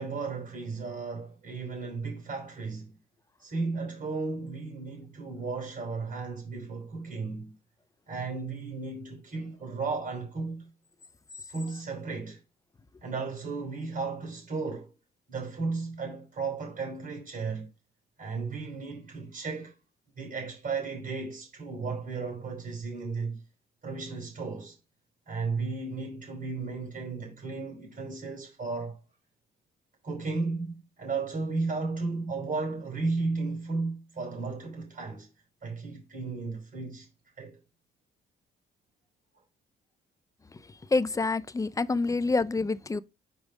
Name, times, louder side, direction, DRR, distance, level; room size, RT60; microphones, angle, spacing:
voice 1, 0.0-2.9 3.4-7.6 8.1-10.7 11.5-12.4 13.0-14.9 15.3-17.7 18.2-19.7 20.2-23.4 23.8-24.8 25.3-29.0 30.0-35.3 35.6-37.1 37.4-37.6 42.1-42.2, right 4 dB, 45° right, 3.6 m, -34 dB
voice 2, 40.9-43.0, left 3 dB, 15° left, 0.5 m, -27 dB
5.4 x 4.7 x 5.1 m
cardioid pair, 90°, 20 cm